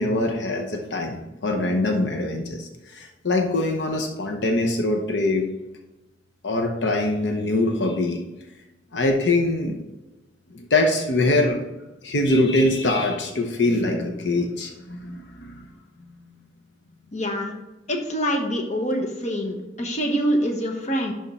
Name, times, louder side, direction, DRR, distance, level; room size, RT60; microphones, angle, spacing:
voice 1, 0.0-5.5 6.4-8.2 8.9-9.8 10.5-11.6 12.0-15.7, left 2 dB, 75° left, 3 dB, 0.8 m, -23 dB
voice 2, 17.1-17.5 17.9-21.1, equal, 40° left, 2 dB, 1.0 m, -25 dB
11.0 x 3.7 x 4.2 m, 1.0 s
head